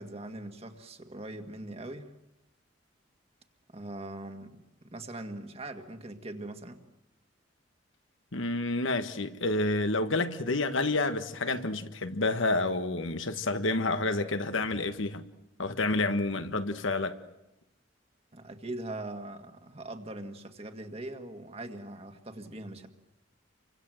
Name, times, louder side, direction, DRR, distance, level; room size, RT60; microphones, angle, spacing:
voice 1, 0.0-2.1 3.7-4.5 4.8-6.8 18.3-22.9, right 1 dB, 30° right, 1.9 m, -41 dB
voice 2, 8.3-15.2 15.6-17.2, left 2 dB, 85° left, 1.6 m, -29 dB
30.0 x 25.0 x 7.9 m
head